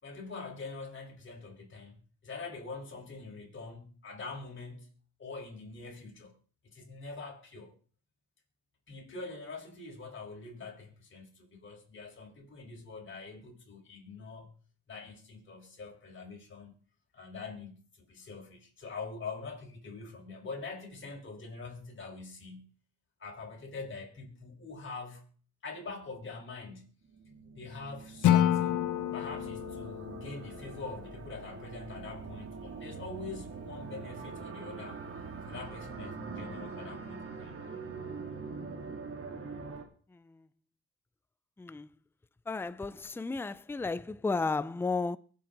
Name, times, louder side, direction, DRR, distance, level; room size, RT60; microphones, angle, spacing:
voice 1, 0.0-4.9 5.2-6.4 6.6-7.7 8.9-14.5 14.9-16.7 17.1-22.7 23.2-25.2 25.6-26.9 27.6-35.0 35.4-37.6, left 4 dB, 40° left, 4.9 m, -44 dB
sound 1, 27.0-39.8, right 5 dB, 45° right, 2.8 m, -43 dB
Acoustic guitar / Strum, 28.2-31.4, left 11 dB, 75° left, 1.0 m, -29 dB
voice 2, 41.6-41.9 42.5-45.2, left 3 dB, 10° left, 0.5 m, -33 dB
23.0 x 7.7 x 3.9 m
cardioid pair, 90°, 30 cm